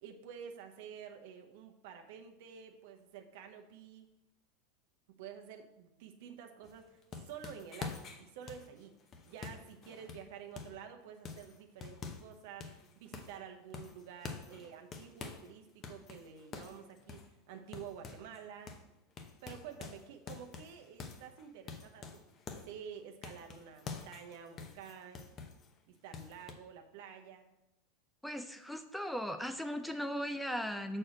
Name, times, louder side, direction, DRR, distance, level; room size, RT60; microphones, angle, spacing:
voice 1, 0.0-4.1 5.1-9.0 9.2-18.8 19.4-22.2 22.5-25.3 25.9-27.5, right 8 dB, 65° right, 4 dB, 0.8 m, -50 dB
sound 1, 6.6-10.8 11.3-12.3 12.6-13.4 13.7-15.5 15.8-18.4 18.7-18.9 19.2-22.8 23.2-25.7 26.1-26.5, left 5 dB, 35° left, 0.8 m, -47 dB
voice 2, 28.2-31.0, equal, ahead, 8 dB, 0.5 m, -38 dB
6.3 x 4.4 x 5.0 m, 0.92 s
hypercardioid pair, 100°, 0 cm